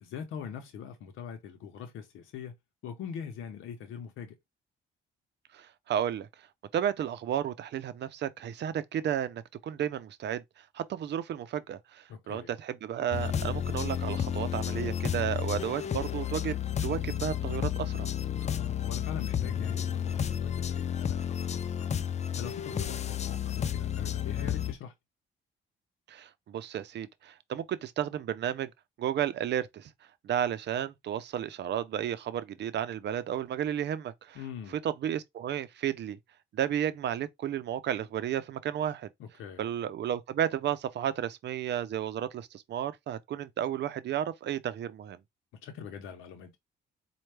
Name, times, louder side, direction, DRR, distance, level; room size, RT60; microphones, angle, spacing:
voice 1, 0.0-2.6 2.8-4.3 12.1-12.6 18.3-22.0 22.4-24.9 34.3-34.8 39.2-39.7 45.6-46.6, left 7 dB, 85° left, 0.7 m, -42 dB
voice 2, 5.5-6.3 6.7-18.1 26.1-28.7 29.0-29.9 30.2-34.4 34.8-36.2 36.5-39.1 39.6-45.2, right 10 dB, 60° right, 0.6 m, -33 dB
sound 1, 13.1-24.7, left 9 dB, 35° left, 0.4 m, -32 dB
4.3 x 2.3 x 3.3 m
cardioid pair, 90°, 20 cm